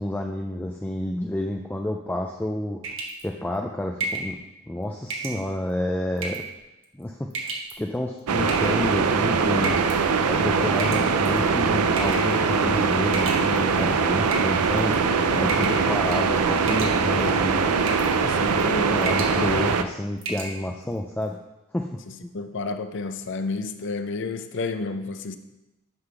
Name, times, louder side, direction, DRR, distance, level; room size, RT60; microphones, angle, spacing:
voice 1, 0.0-2.8 3.2-4.4 4.7-6.4 6.9-9.8 10.3-17.7 18.9-21.4 21.7-22.4, left 1 dB, 10° left, 2 dB, 0.4 m, -30 dB
sound 1, 2.8-3.2 4.0-4.3 5.1-5.4 6.2-6.5 7.3-7.7 8.5-8.9 9.6-10.0 10.8-11.4 12.0-12.3 13.1-13.8 14.3-14.9 15.5-15.8 16.1-16.4 16.7-17.2 17.9-18.1 18.5-18.7 19.0-19.4 19.7-19.8 20.2-20.5, right 3 dB, 60° right, 1.4 m, -31 dB
sound 2, 8.3-19.8, right 5 dB, 85° right, 0.5 m, -22 dB
voice 2, 18.2-19.1 22.3-25.4, left 3 dB, 55° left, 9 dB, 0.6 m, -31 dB
9.6 x 3.9 x 6.0 m, 0.98 s
head